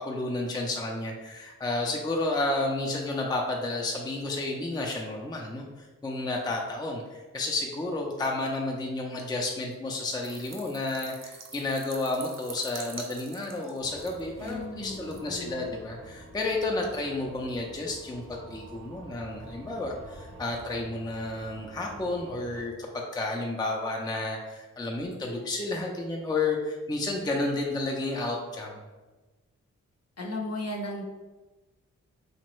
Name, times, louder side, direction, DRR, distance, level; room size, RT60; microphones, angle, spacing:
voice 1, 0.0-28.8, left 2 dB, 10° left, 0 dB, 0.5 m, -31 dB
sound 1, 10.2-14.6 15.0-15.2, right 4 dB, 50° right, 0.6 m, -45 dB
sound 2, 13.8-22.6, right 1 dB, 85° right, 0.8 m, -47 dB
voice 2, 14.4-15.7 30.2-31.0, left 1 dB, 50° left, 0 dB, 0.7 m, -36 dB
2.9 x 2.1 x 3.0 m, 1.2 s
cardioid pair, 45°, 33 cm